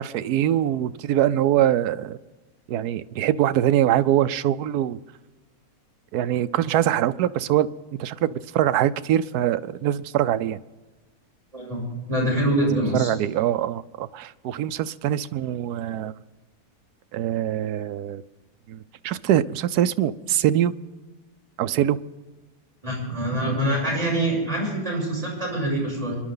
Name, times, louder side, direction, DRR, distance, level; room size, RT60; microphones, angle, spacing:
voice 1, 0.0-2.2 2.7-5.0 6.1-7.7 8.0-10.6 12.7-16.1 17.1-18.2 18.7-20.7 21.6-22.0, right 11 dB, 90° right, 14 dB, 1.1 m, -23 dB
voice 2, 12.1-13.1 22.8-26.2, right 1 dB, 20° right, -3 dB, 6.8 m, -25 dB
25.5 x 11.5 x 3.9 m, 1.3 s
omnidirectional pair, 1.6 m